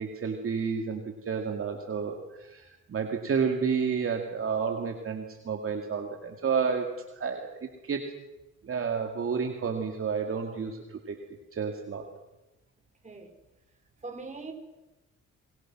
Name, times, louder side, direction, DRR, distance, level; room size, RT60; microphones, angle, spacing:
voice 1, 0.0-7.5 7.8-8.0 8.6-11.2 11.5-12.1, right 6 dB, 45° right, 3 dB, 2.5 m, -30 dB
voice 2, 14.0-14.5, right 3 dB, 25° right, 3 dB, 4.8 m, -40 dB
26.0 x 22.5 x 6.2 m, 1.0 s
cardioid pair, 90°, 30 cm